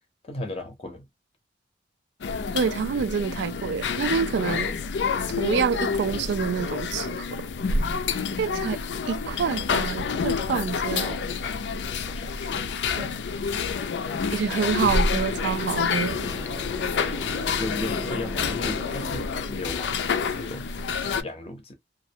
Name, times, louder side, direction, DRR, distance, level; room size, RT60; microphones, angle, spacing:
voice 1, 0.2-1.1 10.9-11.5 12.0-12.7 17.6-20.7 21.0-21.7, left 1 dB, 35° left, 0.6 m, -36 dB
sound 1, 2.2-21.2, left 5 dB, 75° left, 0.4 m, -28 dB
voice 2, 2.5-4.7 5.4-7.5 8.4-8.8 9.1-11.2 13.0-13.1 14.3-16.3, right 6 dB, 75° right, 0.3 m, -27 dB
sound 2, 13.7-20.4, equal, 5° right, 0.6 m, -41 dB
2.4 x 2.0 x 2.7 m
head